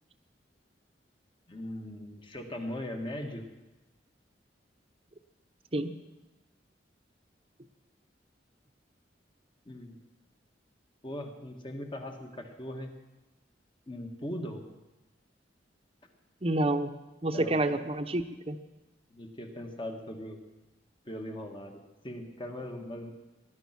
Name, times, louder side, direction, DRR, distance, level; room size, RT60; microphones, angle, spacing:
voice 1, 1.5-3.5 9.7-10.0 11.0-12.9 13.9-14.6 17.3-17.5 19.1-20.4 21.1-23.1, left 1 dB, 25° left, 4 dB, 1.8 m, -39 dB
voice 2, 16.4-16.9 17.2-18.6, right 1 dB, 35° right, 8 dB, 0.9 m, -28 dB
19.0 x 12.5 x 6.0 m, 1.1 s
head